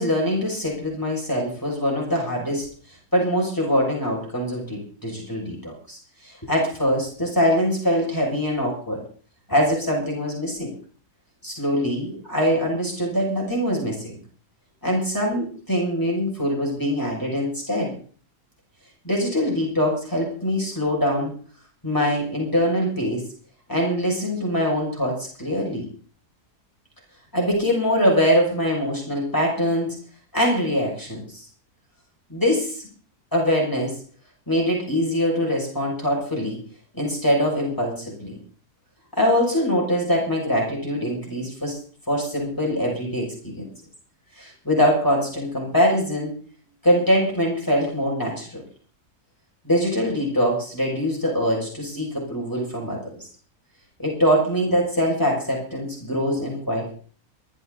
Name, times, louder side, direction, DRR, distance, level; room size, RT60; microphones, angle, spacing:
voice 1, 0.0-2.7 3.1-9.0 9.5-10.7 11.4-14.2 14.8-18.0 19.0-21.3 21.8-23.2 23.7-25.9 27.3-30.0 30.3-31.4 32.3-32.9 33.3-34.0 34.5-36.6 37.0-38.4 39.2-41.8 42.1-43.7 44.4-46.3 46.8-48.6 49.6-53.3 54.0-56.9, equal, 10° left, -3 dB, 6.8 m, -23 dB
20.5 x 14.5 x 4.1 m, 0.43 s
omnidirectional pair, 1.6 m